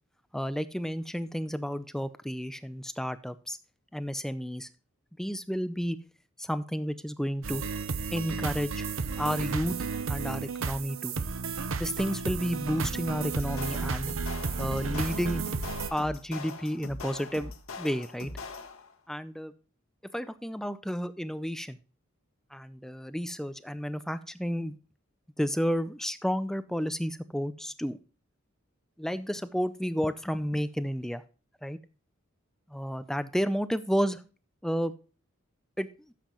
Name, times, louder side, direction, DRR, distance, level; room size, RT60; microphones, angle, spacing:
voice 1, 0.3-3.6 3.9-4.7 5.2-6.0 6.4-7.6 8.1-8.8 9.2-9.8 10.1-11.1 11.8-14.1 14.6-15.4 15.9-17.5 17.8-18.3 19.1-19.5 20.0-21.8 22.5-24.8 25.4-28.0 29.0-31.2 31.6-31.8 32.7-34.2 34.6-34.9 35.8-36.1, equal, ahead, 13 dB, 0.5 m, -31 dB
sound 1, 7.4-15.9, right 5 dB, 70° right, 0.8 m, -33 dB
sound 2, 13.2-18.9, left 3 dB, 75° left, 1.6 m, -42 dB
13.0 x 7.5 x 3.0 m, 0.36 s
head